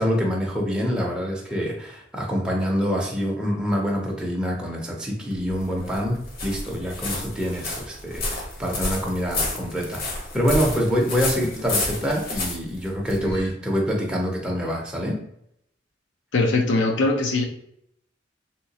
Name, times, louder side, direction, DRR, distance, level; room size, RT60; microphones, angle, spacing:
voice 1, 0.0-15.2, equal, 5° right, -2 dB, 0.5 m, -26 dB
sound 1, 5.3-13.5, left 2 dB, 55° left, 0.9 m, -30 dB
voice 2, 16.3-17.4, left 2 dB, 80° left, 2 dB, 0.5 m, -21 dB
3.1 x 2.9 x 2.7 m, 0.72 s
head